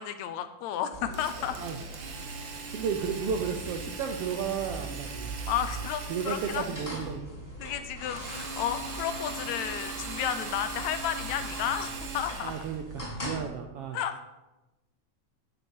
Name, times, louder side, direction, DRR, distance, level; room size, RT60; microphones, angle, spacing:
voice 1, 0.0-1.6 5.5-6.6 7.6-12.6 13.9-14.2, left 10 dB, 75° left, 10 dB, 1.9 m, -32 dB
sound 1, 0.9-13.4, right 1 dB, 10° left, 3.6 m, -41 dB
Drill, 1.1-7.2 8.2-12.8, right 5 dB, 55° right, 1.3 m, -41 dB
voice 2, 2.7-5.4 6.1-7.3 12.4-14.0, right 7 dB, 75° right, 4 dB, 1.4 m, -33 dB
10.5 x 8.2 x 5.4 m, 1.0 s
omnidirectional pair, 3.4 m